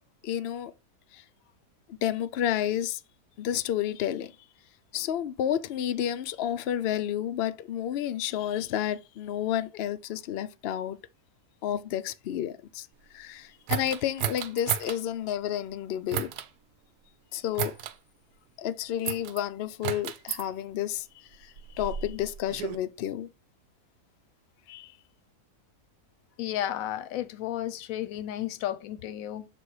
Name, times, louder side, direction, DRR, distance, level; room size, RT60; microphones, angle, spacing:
voice 1, 0.2-0.7 1.1-1.2 2.0-3.0 3.4-4.3 4.9-11.0 11.6-12.9 13.1-16.3 17.3-17.7 18.6-21.1 21.4-23.3 24.7-24.9, left 11 dB, 85° left, 0.5 m, -30 dB
sound 1, 13.7-15.0 16.1-16.5 17.6-18.0 19.1-19.4 19.8-20.4 21.3-22.8, right 10 dB, 90° right, 1.1 m, -33 dB
voice 2, 26.4-29.5, left 12 dB, 70° left, 0.9 m, -33 dB
6.9 x 3.4 x 4.7 m
omnidirectional pair, 1.6 m